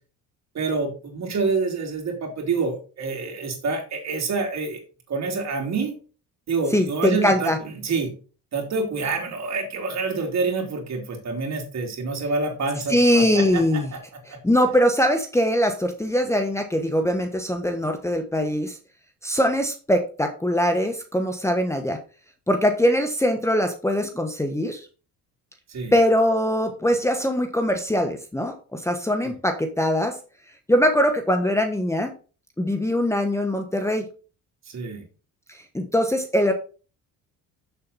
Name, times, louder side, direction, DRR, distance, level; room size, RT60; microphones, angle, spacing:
voice 1, 0.5-4.8 5.1-6.0 6.5-7.5 7.8-8.1 8.5-14.4 25.7-25.9 29.2-29.3 34.7-35.0, right 4 dB, 50° right, 2 dB, 3.4 m, -27 dB
voice 2, 6.7-7.6 12.9-13.9 14.4-18.8 19.2-22.0 22.5-24.9 25.9-30.2 30.7-32.1 32.6-34.0 35.5-36.5, equal, 10° left, 6 dB, 1.2 m, -22 dB
7.5 x 7.1 x 4.2 m, 0.36 s
cardioid pair, 100°, 35 cm